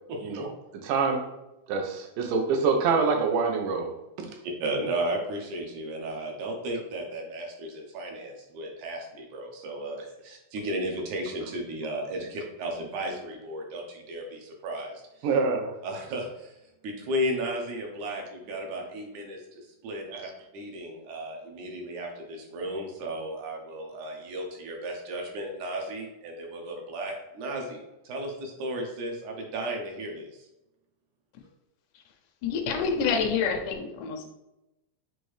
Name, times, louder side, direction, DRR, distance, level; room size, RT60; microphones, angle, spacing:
voice 1, 0.1-0.5 4.4-15.3 15.8-16.6 16.8-30.5, right 1 dB, 75° right, 1 dB, 2.0 m, -34 dB
voice 2, 0.8-1.3 1.7-3.9 4.2-4.3 15.2-15.7, right 4 dB, 90° right, 3 dB, 2.3 m, -25 dB
voice 3, 32.4-34.3, left 5 dB, 80° left, 5 dB, 1.9 m, -27 dB
6.1 x 2.7 x 3.1 m, 0.94 s
omnidirectional pair, 3.7 m